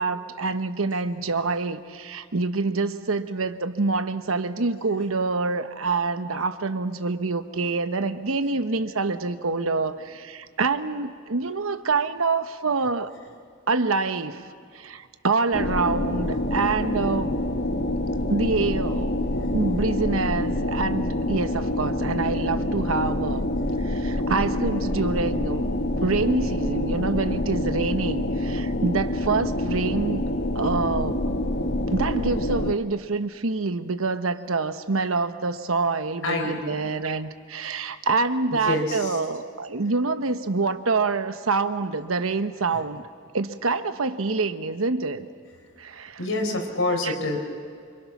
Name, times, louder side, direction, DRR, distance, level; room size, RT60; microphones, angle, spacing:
voice 1, 0.0-13.1 13.7-17.4 18.3-19.1 19.5-23.5 23.8-25.6 26.0-30.3 30.5-31.2 31.9-43.0 43.3-45.3 45.8-46.2 47.0-47.1, right 3 dB, 90° right, 10 dB, 1.0 m, -26 dB
sound 1, 15.5-32.7, left 1 dB, 55° left, 1.1 m, -26 dB
voice 2, 36.2-36.8 38.5-39.2 42.7-42.9 46.2-47.4, left 2 dB, 80° left, 3 dB, 4.1 m, -27 dB
27.0 x 25.0 x 6.0 m, 2.2 s
head